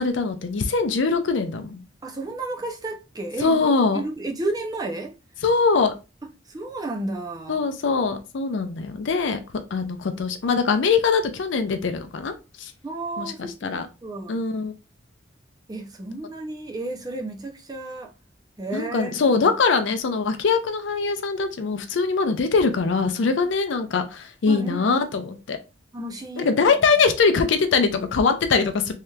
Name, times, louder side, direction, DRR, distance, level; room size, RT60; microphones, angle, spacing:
voice 1, 0.0-1.8 3.4-4.0 5.4-5.9 7.5-9.4 9.7-12.7 13.2-13.9 14.3-14.7 18.7-25.6 26.4-28.9, left 4 dB, 70° left, 0.5 m, -22 dB
voice 2, 2.0-5.1 6.5-7.7 12.8-13.7 14.0-14.4 15.7-18.1 18.6-19.3 24.5-24.9 25.9-26.5, right 2 dB, 20° right, 0.5 m, -32 dB
3.2 x 2.8 x 2.3 m
head